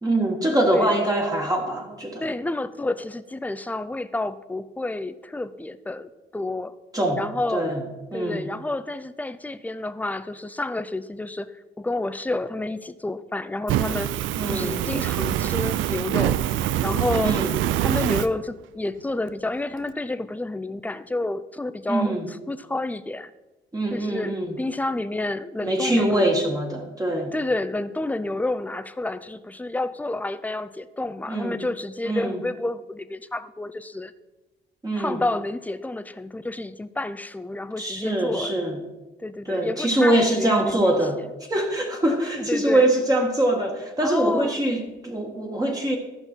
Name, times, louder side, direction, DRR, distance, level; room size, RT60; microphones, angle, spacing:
voice 1, 0.0-2.2 6.9-7.2 7.5-7.8 8.1-8.5 14.4-14.8 17.2-17.5 21.9-22.3 23.7-24.6 25.6-27.3 31.3-31.6 32.0-32.4 34.8-35.2 37.8-38.8 39.5-41.2 41.5-46.0, right 1 dB, 20° right, 0 dB, 1.6 m, -23 dB
voice 2, 2.2-6.7 7.2-7.7 8.1-14.1 14.5-16.4 16.8-17.4 17.8-23.3 23.9-26.3 27.3-34.1 35.0-38.5 39.2-41.2 42.4-42.9 44.0-44.6, left 2 dB, 10° left, 12 dB, 0.5 m, -29 dB
Fire, 13.7-18.3, right 12 dB, 80° right, 0.4 m, -24 dB
13.5 x 5.4 x 4.4 m, 1.1 s
cardioid pair, 90°, 20 cm